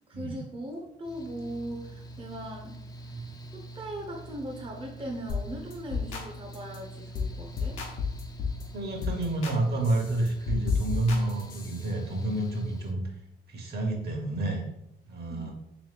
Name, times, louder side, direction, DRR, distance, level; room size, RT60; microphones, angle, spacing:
voice 1, 0.1-2.8 3.1-3.2 3.5-7.8 15.3-15.5, right 1 dB, 25° right, 0 dB, 0.7 m, -39 dB
Mechanical fan, 1.0-12.9, right 1 dB, 20° left, 0.4 m, -45 dB
sound 1, 5.3-5.5 5.7-6.3 6.5-6.8 7.1-7.3 7.6-8.6 9.0-9.6 9.8-11.9, left 5 dB, 80° left, 0.8 m, -32 dB
voice 2, 8.7-13.1 13.5-14.6 15.1-15.5, right 2 dB, 55° right, 2 dB, 1.1 m, -29 dB
3.4 x 3.1 x 3.3 m, 0.81 s
cardioid pair, 90°, 20 cm